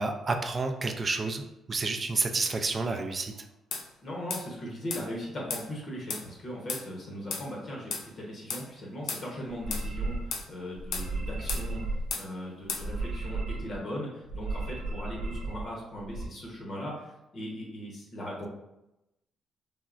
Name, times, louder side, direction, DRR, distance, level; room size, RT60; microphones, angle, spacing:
voice 1, 0.0-1.4 1.7-3.4, right 3 dB, 35° right, 4 dB, 0.3 m, -30 dB
sound 1, 3.7-3.9 4.3-4.5 4.9-5.0 5.5-5.7 6.1-6.3 6.7-6.8 7.3-7.5 7.9-8.1 8.5-8.6 9.1-9.2 9.7-9.9 10.3-10.5 10.9-11.1 11.5-11.7 12.1-12.3 12.7-12.9, left 5 dB, 80° left, 0.4 m, -34 dB
voice 2, 4.0-18.5, equal, 50° left, -3 dB, 0.8 m, -39 dB
sound 2, 9.5-10.4 10.7-12.1 12.7-13.8 14.3-15.7 16.0-16.3, right 2 dB, 90° right, 0.5 m, -34 dB
3.4 x 2.0 x 2.4 m, 0.92 s
cardioid pair, 90°, 0 cm